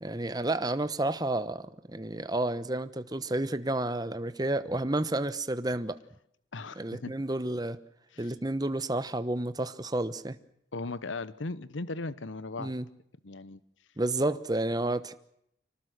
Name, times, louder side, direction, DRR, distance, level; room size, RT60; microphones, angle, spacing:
voice 1, 0.0-6.0 6.8-7.8 8.2-10.4 12.6-12.9 14.0-15.1, right 1 dB, 20° right, 12 dB, 1.0 m, -30 dB
voice 2, 6.5-7.2 8.1-8.3 10.7-12.8 13.2-13.6, left 3 dB, 80° left, 17 dB, 0.9 m, -37 dB
25.5 x 19.0 x 8.0 m, 0.71 s
head